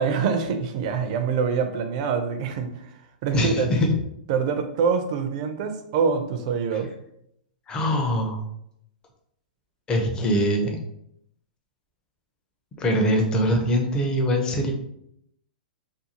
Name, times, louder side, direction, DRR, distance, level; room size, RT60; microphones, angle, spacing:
voice 1, 0.0-2.9 3.2-3.7 4.3-6.9, right 6 dB, 45° right, 6 dB, 0.4 m, -25 dB
voice 2, 3.3-4.0 7.7-8.4 9.9-10.8 12.8-14.7, equal, 15° left, 2 dB, 0.5 m, -22 dB
2.6 x 2.3 x 2.8 m, 0.74 s
hypercardioid pair, 150°, 5 cm